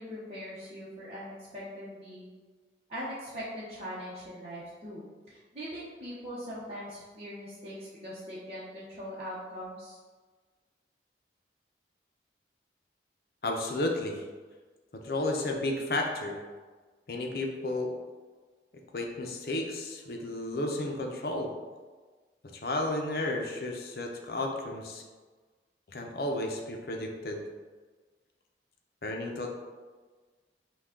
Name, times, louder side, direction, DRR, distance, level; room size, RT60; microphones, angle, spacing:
voice 1, 0.0-2.3 2.9-10.0, equal, 35° right, -10 dB, 0.9 m, -41 dB
voice 2, 13.4-14.2 15.0-16.4 17.1-17.9 18.9-21.5 22.5-25.0 25.9-27.4 29.0-29.5, left 2 dB, 55° left, 1 dB, 0.6 m, -32 dB
5.9 x 2.3 x 3.7 m, 1.4 s
head